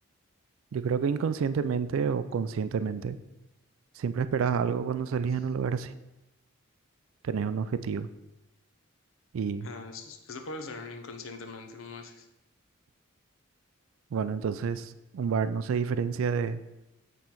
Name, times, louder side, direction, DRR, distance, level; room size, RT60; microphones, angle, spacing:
voice 1, 0.7-3.2 4.0-5.9 7.2-8.1 9.3-9.7 14.1-16.6, right 6 dB, 75° right, 13 dB, 0.3 m, -29 dB
voice 2, 9.6-12.3, left 3 dB, 70° left, 6 dB, 0.7 m, -42 dB
7.4 x 3.9 x 4.5 m, 0.96 s
head